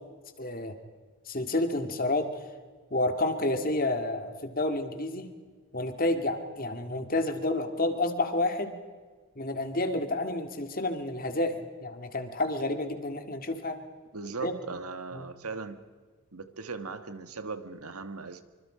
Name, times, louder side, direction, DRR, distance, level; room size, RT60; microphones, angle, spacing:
voice 1, 0.4-0.8 1.3-2.3 2.9-5.3 5.7-8.8 9.4-13.8 14.4-14.5 15.1-15.3, left 2 dB, 40° left, 7 dB, 2.0 m, -30 dB
voice 2, 14.1-15.8 16.3-18.5, right 4 dB, 90° right, 10 dB, 1.7 m, -38 dB
25.5 x 25.0 x 5.0 m, 1.4 s
head